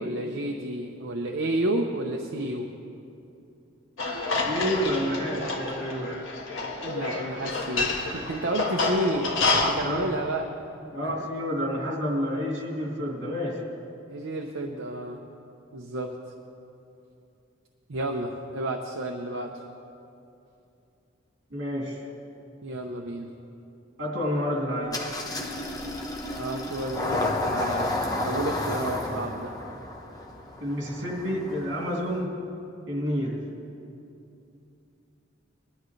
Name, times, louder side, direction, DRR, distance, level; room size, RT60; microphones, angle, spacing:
voice 1, 0.0-2.7 6.8-10.5 14.1-15.3 15.7-16.1 17.9-19.5 22.6-23.3 26.3-27.9 28.2-29.5, right 1 dB, 85° right, 1 dB, 0.8 m, -31 dB
sound 1, 4.0-9.7, left 3 dB, 85° left, 1.5 m, -28 dB
voice 2, 4.5-6.1 9.8-10.1 10.9-13.6 21.5-22.1 24.0-25.0 30.6-32.3 32.9-33.4, equal, 65° right, -2 dB, 2.9 m, -29 dB
Engine starting, 24.9-32.2, left 2 dB, 20° left, 1.1 m, -31 dB
21.0 x 11.5 x 3.3 m, 2.8 s
head